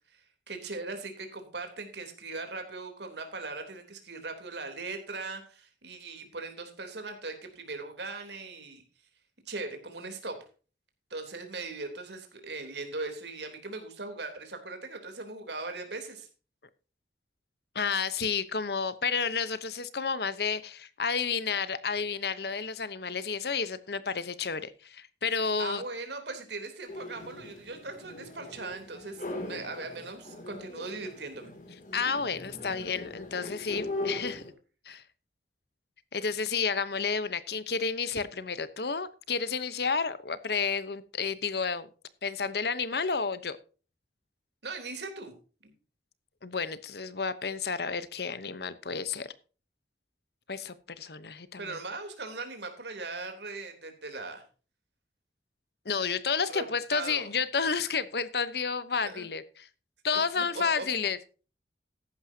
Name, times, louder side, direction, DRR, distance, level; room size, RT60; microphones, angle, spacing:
voice 1, 0.1-8.8 9.5-10.4 11.1-16.3 25.6-31.5 44.6-45.3 45.6-45.7 51.6-54.4 56.5-57.3 59.1-59.3 60.4-60.8, right 3 dB, 75° right, 5 dB, 3.5 m, -39 dB
voice 2, 17.7-25.8 31.9-34.4 34.9-35.0 36.1-41.9 42.2-43.6 46.4-49.3 50.5-51.8 55.8-59.7 60.0-61.2, left 5 dB, 65° left, 14 dB, 1.0 m, -31 dB
sound 1, 26.9-34.5, left 2 dB, 45° left, 2.8 m, -40 dB
14.5 x 11.0 x 2.8 m, 0.36 s
head